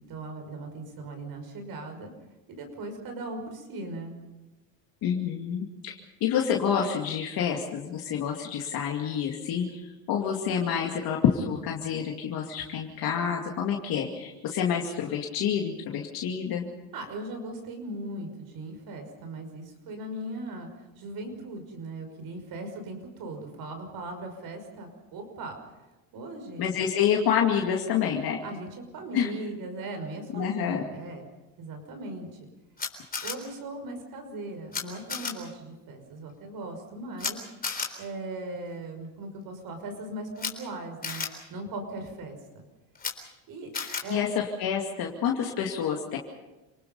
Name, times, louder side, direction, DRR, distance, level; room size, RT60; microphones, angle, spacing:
voice 1, 0.0-2.1 2.5-4.2 16.9-25.5 26.1-26.6 28.4-31.2 31.6-32.3 33.2-37.4 38.0-41.2 41.5-42.6 43.5-43.7 44.0-44.2, right 2 dB, 55° right, 5 dB, 5.8 m, -38 dB
voice 2, 5.0-16.7 26.6-28.4 29.1-29.3 30.3-30.8 43.7-43.8 44.1-46.2, left 8 dB, 60° left, 0 dB, 2.5 m, -28 dB
Camera, 32.8-33.3 34.7-34.8 35.1-35.3 37.2-37.3 37.6-37.9 40.4-40.5 41.0-41.3 43.0-43.1 43.7-44.0, left 5 dB, 20° left, 3.9 m, -31 dB
28.5 x 19.5 x 5.4 m, 1.1 s
cardioid pair, 110°, 41 cm